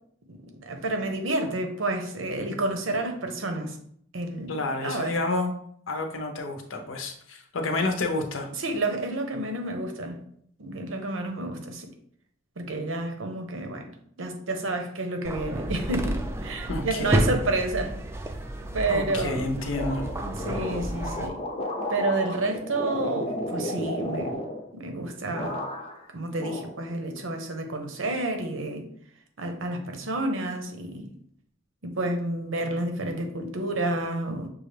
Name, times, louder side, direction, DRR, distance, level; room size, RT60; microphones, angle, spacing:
voice 1, 0.4-3.8 4.1-5.1 8.6-10.2 10.6-11.9 12.6-13.8 14.2-18.0 18.7-19.4 20.2-21.4 21.9-24.4 24.7-25.6 26.1-28.8 29.4-31.1 31.8-34.5, right 2 dB, 85° right, 5 dB, 0.8 m, -30 dB
voice 2, 4.5-5.5 5.9-8.5 16.7-17.2 18.9-20.1, left 2 dB, 85° left, 4 dB, 0.8 m, -29 dB
sound 1, 15.2-21.3, right 1 dB, 15° right, 0.3 m, -30 dB
sound 2, 19.7-25.0 25.3-26.1 26.4-27.3, left 1 dB, 30° left, 0.6 m, -33 dB
6.3 x 2.4 x 3.3 m, 0.65 s
head